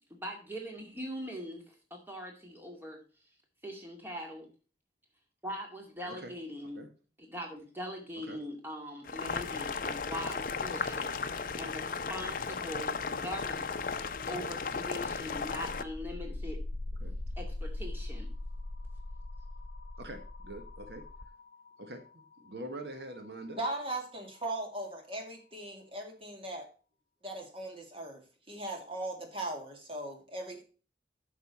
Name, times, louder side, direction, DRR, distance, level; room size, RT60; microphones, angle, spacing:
voice 1, 0.1-3.0 3.6-4.5 5.4-6.8 7.2-13.9 14.3-16.6 17.4-18.3, equal, 10° right, 1 dB, 2.1 m, -42 dB
Boiling, 9.0-15.8, left 5 dB, 50° left, 0.6 m, -35 dB
sound 1, 15.0-24.6, left 2 dB, 75° left, 0.9 m, -42 dB
voice 2, 20.0-21.0 21.8-23.6, right 1 dB, 75° right, 6 dB, 1.2 m, -44 dB
voice 3, 23.5-26.7 27.2-28.2 28.5-30.6, right 1 dB, 30° right, 2 dB, 2.2 m, -38 dB
8.5 x 6.4 x 4.2 m, 0.37 s
head